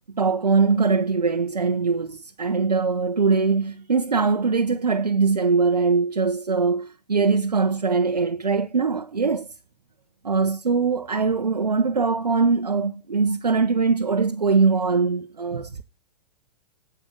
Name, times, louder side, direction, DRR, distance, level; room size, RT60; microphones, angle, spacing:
voice 1, 0.2-9.5 10.2-15.8, right 4 dB, 90° right, 0.8 m, -22 dB
8.5 x 7.8 x 6.3 m
figure-of-eight pair, 110°, 20 cm